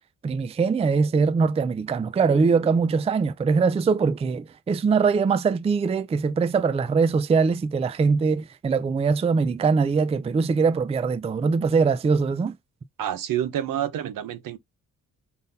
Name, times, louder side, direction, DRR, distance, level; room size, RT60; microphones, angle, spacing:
voice 1, 0.2-12.6, right 5 dB, 20° right, 0.3 m, -22 dB
voice 2, 13.0-14.6, right 11 dB, 90° right, 0.8 m, -28 dB
4.1 x 3.7 x 2.7 m
cardioid pair, 115°, 32 cm